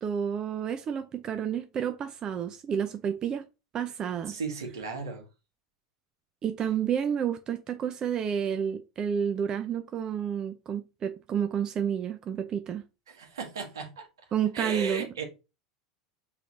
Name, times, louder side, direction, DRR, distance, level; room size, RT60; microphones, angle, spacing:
voice 1, 0.0-3.4 3.7-4.4 6.4-12.8 14.3-15.2, right 8 dB, 35° right, 0.5 m, -30 dB
voice 2, 4.3-5.3 13.1-14.1 14.5-15.2, right 5 dB, 80° right, 1.5 m, -35 dB
5.7 x 3.2 x 2.6 m
hypercardioid pair, 85°, 2 cm